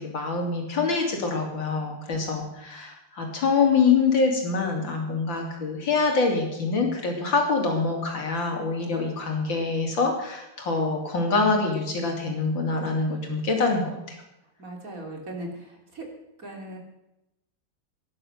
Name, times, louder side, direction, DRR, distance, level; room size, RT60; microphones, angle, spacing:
voice 1, 0.0-14.2, left 4 dB, 75° left, 2 dB, 3.8 m, -25 dB
voice 2, 14.6-16.1 16.4-16.8, right 1 dB, 45° right, 2 dB, 3.4 m, -39 dB
17.5 x 11.0 x 6.5 m, 0.90 s
omnidirectional pair, 2.1 m